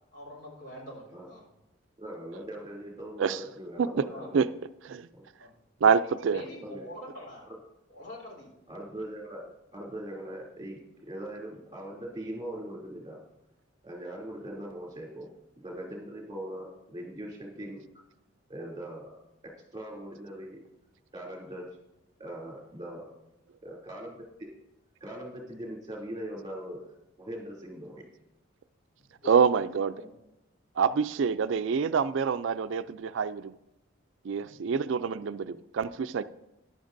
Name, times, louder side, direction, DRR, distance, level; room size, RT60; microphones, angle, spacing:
voice 1, 0.1-1.4 4.1-4.3 5.4-5.5 6.3-7.5 7.9-8.5 29.2-29.3 29.9-30.1 34.4-34.6, left 1 dB, 60° left, 3.8 m, -44 dB
voice 2, 2.0-4.3 5.1-5.2 6.6-6.8 7.5-7.6 8.7-9.4 9.7-13.2 13.8-15.3 15.6-17.8 18.5-19.2 19.7-20.6 21.1-21.7 22.2-23.1 23.6-24.5 25.0-26.9 27.2-28.1, right 1 dB, 20° right, 2.9 m, -40 dB
voice 3, 5.8-6.4 29.3-30.0 30.8-33.5 34.2-36.2, right 6 dB, 75° right, 0.4 m, -26 dB
13.5 x 11.0 x 2.6 m
head